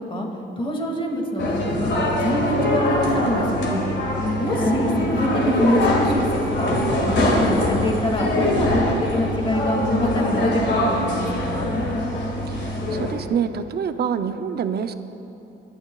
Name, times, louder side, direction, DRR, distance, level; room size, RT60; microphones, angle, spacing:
voice 1, 0.6-3.9 4.4-6.8 7.1-11.7, equal, 25° left, 1 dB, 2.4 m, -25 dB
sound 1, 1.4-13.1, left 1 dB, 65° left, 2.2 m, -23 dB
voice 2, 12.9-14.9, right 7 dB, 55° right, 9 dB, 0.7 m, -25 dB
25.5 x 11.0 x 2.4 m, 2.9 s
cardioid pair, 90°, 20 cm